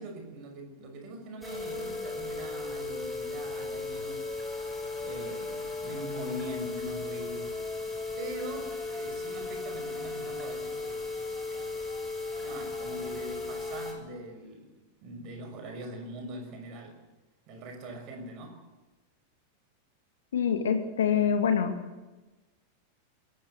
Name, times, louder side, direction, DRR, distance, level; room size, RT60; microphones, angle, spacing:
voice 1, 0.0-4.4 5.0-7.8 8.2-11.0 11.5-11.7 12.4-14.7 15.0-17.0 17.5-18.6, right 1 dB, 40° right, 5 dB, 6.1 m, -42 dB
sound 1, 1.4-13.9, left 3 dB, 5° left, 6.9 m, -36 dB
voice 2, 20.3-21.7, left 7 dB, 65° left, 6 dB, 2.2 m, -25 dB
22.0 x 18.0 x 8.1 m, 1.1 s
figure-of-eight pair, 90°, 0 cm